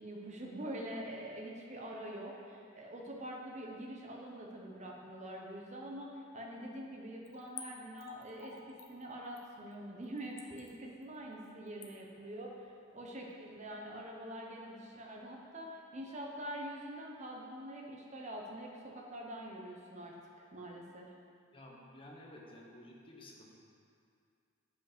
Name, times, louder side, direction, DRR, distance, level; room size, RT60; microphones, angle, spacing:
voice 1, 0.0-21.1, right 1 dB, 35° right, -1 dB, 1.0 m, -45 dB
Splash splatter / Trickle dribble, 7.2-13.7 14.0-14.1, left 6 dB, 75° left, 0.8 m, -53 dB
voice 2, 21.5-23.6, left 1 dB, 25° left, -2 dB, 1.0 m, -53 dB
7.9 x 5.1 x 5.1 m, 2.4 s
head